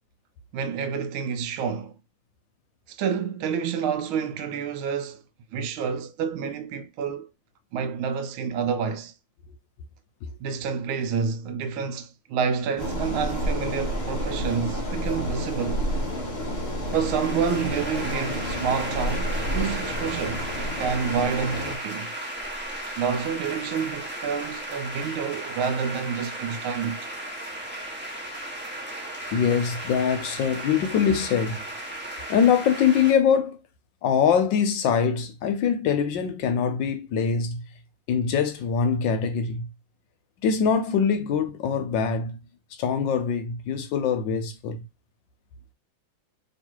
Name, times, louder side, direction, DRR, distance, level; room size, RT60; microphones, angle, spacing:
voice 1, 0.5-1.9 2.9-5.2 5.5-7.3 7.7-9.1 10.4-15.8 16.9-20.5 20.8-22.1 23.0-27.1, right 6 dB, 80° right, 1.4 m, -28 dB
sound 1, 12.8-21.7, equal, 40° left, 0.9 m, -30 dB
sound 2, 16.9-33.1, right 1 dB, 15° right, 0.4 m, -35 dB
voice 2, 29.3-31.6 32.3-33.6 34.0-37.6 38.1-39.7 40.4-42.4 42.8-44.8, left 7 dB, 70° left, 1.3 m, -23 dB
3.2 x 3.1 x 4.5 m
omnidirectional pair, 2.3 m